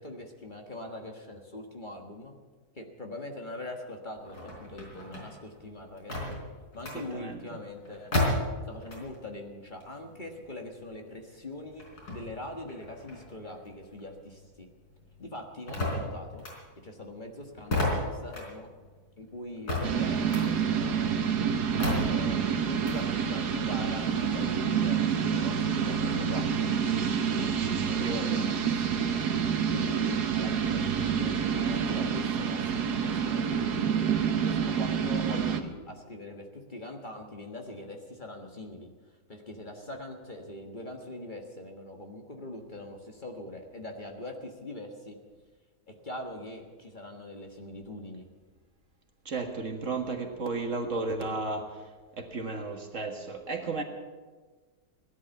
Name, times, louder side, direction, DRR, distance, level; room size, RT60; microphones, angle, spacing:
voice 1, 0.0-2.3 2.7-6.4 6.7-8.1 8.7-14.7 15.2-16.4 16.8-18.8 19.2-21.2 22.0-26.7 27.3-29.2 29.7-38.9 39.3-45.2 45.9-48.3, left 1 dB, 30° left, 2 dB, 1.6 m, -42 dB
sound 1, 4.2-9.3 9.6-14.5 14.8-23.0, left 1 dB, 90° left, 5.0 m, -34 dB
voice 2, 6.8-7.6 27.6-28.4 49.3-53.8, right 3 dB, 55° right, 4 dB, 1.9 m, -34 dB
sound 2, 19.8-35.6, right 7 dB, 85° right, 1.7 m, -28 dB
17.0 x 11.5 x 7.2 m, 1.4 s
omnidirectional pair, 1.7 m